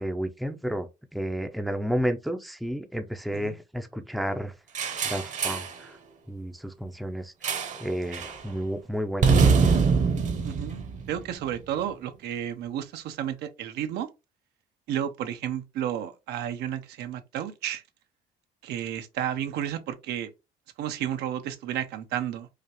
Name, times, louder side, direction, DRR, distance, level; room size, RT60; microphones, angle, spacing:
voice 1, 0.0-4.5 5.0-5.9 6.3-7.3 7.8-9.8, equal, ahead, 0.5 m, -31 dB
sound 1, 4.7-5.8 7.4-7.9 8.1-8.4 9.2-11.5, right 5 dB, 45° right, 0.9 m, -24 dB
voice 2, 10.4-14.1 14.9-17.8 18.6-20.3 20.8-22.5, right 10 dB, 80° right, 0.6 m, -32 dB
4.9 x 2.4 x 2.9 m
cardioid pair, 110°, 17 cm